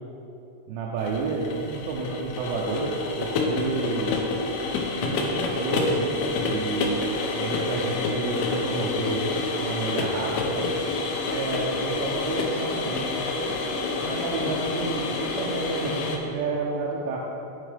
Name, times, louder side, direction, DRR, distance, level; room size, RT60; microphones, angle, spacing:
voice 1, 0.7-4.3 5.0-7.1 7.4-9.3 9.6-10.7 11.3-13.1 14.0-17.2, right 3 dB, 80° right, -4 dB, 2.7 m, -30 dB
sound 1, 1.0-16.2, left 3 dB, 85° left, 2.2 m, -28 dB
9.5 x 5.5 x 3.4 m, 2.8 s
omnidirectional pair, 5.3 m